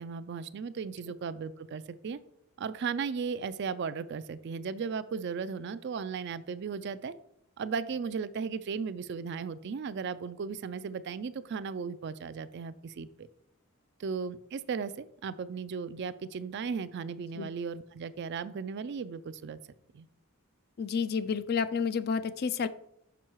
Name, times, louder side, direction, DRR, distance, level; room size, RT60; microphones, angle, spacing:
voice 1, 0.0-2.2 2.6-7.1 7.6-13.3 14.0-19.6 19.9-20.1, right 5 dB, 55° right, 14 dB, 0.3 m, -36 dB
voice 2, 20.8-22.7, left 6 dB, 45° left, 14 dB, 0.3 m, -30 dB
6.1 x 5.5 x 4.5 m, 0.78 s
head